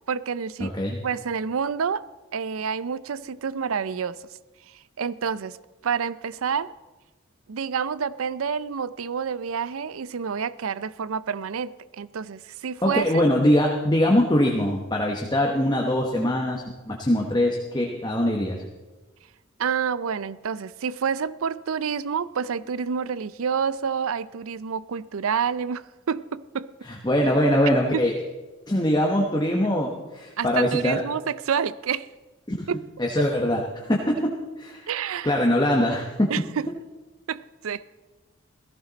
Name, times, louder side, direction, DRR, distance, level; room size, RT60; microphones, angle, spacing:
voice 1, 0.1-0.7 1.0-2.0 2.3-4.2 4.7-5.6 5.8-6.7 7.5-13.3 19.6-26.7 27.9-28.0 30.4-32.1 32.7-32.9 34.9-35.4 36.3-36.7 37.3-37.8, right 6 dB, 75° right, 18 dB, 0.5 m, -28 dB
voice 2, 0.6-1.0 12.8-18.6 26.8-28.1 28.7-31.0 32.5-32.7 33.0-34.3 34.6-34.9 35.2-36.3, left 1 dB, 20° left, 0 dB, 1.0 m, -22 dB
17.0 x 14.5 x 4.0 m, 1.2 s
head